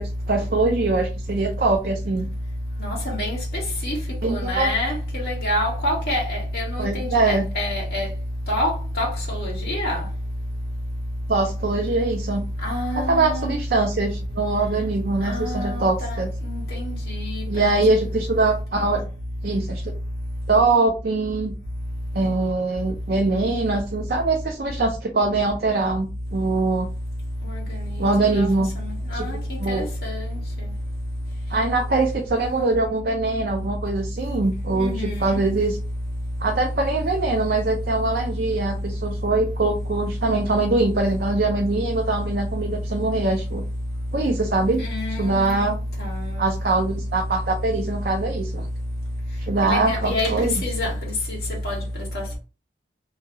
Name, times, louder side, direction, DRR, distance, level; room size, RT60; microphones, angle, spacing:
voice 1, 0.0-2.3 4.2-4.7 6.8-7.4 11.3-12.4 13.0-16.3 17.5-19.0 19.4-19.9 20.5-21.5 22.1-26.9 28.0-28.7 29.1-29.3 29.6-29.9 31.5-35.8 36.4-43.6 44.1-44.8 45.2-45.7 46.4-48.7 49.5-50.5, right 3 dB, 55° right, 0.5 m, -23 dB
voice 2, 2.8-3.4 3.8-4.0 4.3-8.1 8.5-10.0 12.6-13.5 15.2-16.2 16.4-17.8 27.4-27.6 28.3-28.5 29.1-30.3 34.7-35.4 44.8-45.7 46.0-46.3 49.6-50.9 51.6-51.7, left 1 dB, 60° left, 1.4 m, -26 dB
2.8 x 2.7 x 2.6 m
head